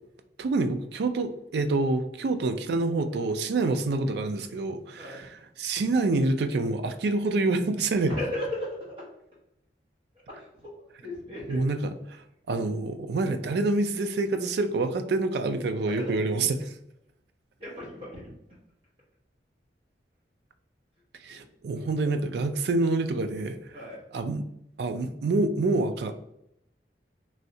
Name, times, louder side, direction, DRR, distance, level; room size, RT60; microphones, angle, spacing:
voice 1, 0.4-8.2 11.5-16.7 21.2-23.8 24.1-24.5 24.8-26.1, right 3 dB, 65° right, 9 dB, 0.3 m, -27 dB
voice 2, 8.1-9.0 10.3-11.6 15.9-16.1 17.6-18.3 21.3-21.4 23.7-24.0, left 1 dB, 30° right, -5 dB, 1.0 m, -36 dB
3.1 x 2.7 x 2.7 m, 0.79 s
head